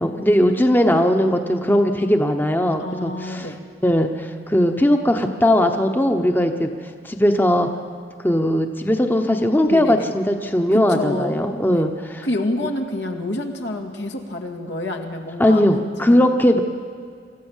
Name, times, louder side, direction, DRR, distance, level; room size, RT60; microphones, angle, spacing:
voice 1, 0.0-3.5 3.8-6.7 7.0-7.7 8.2-11.9 15.4-16.6, equal, 10° left, 5 dB, 0.9 m, -18 dB
voice 2, 2.8-3.6 9.7-10.1 10.7-11.4 11.7-11.9 12.2-15.6 16.0-16.3, left 1 dB, 85° left, 3 dB, 2.1 m, -28 dB
26.5 x 14.5 x 7.3 m, 2.2 s
head